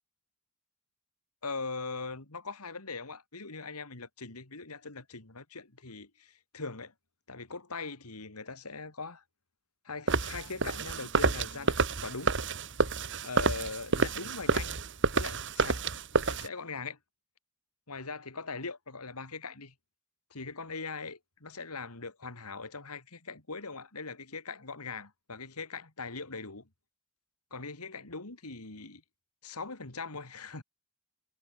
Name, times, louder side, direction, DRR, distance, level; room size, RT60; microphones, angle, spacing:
voice 1, 1.4-6.9 7.3-9.2 9.8-12.3 13.2-14.8 15.1-15.8 16.2-17.0 17.9-19.7 20.3-26.7 27.5-29.0 29.4-30.6, left 4 dB, 85° left, 3.0 m, -41 dB
sound 1, 10.1-16.5, right 3 dB, 55° right, 2.3 m, -29 dB
head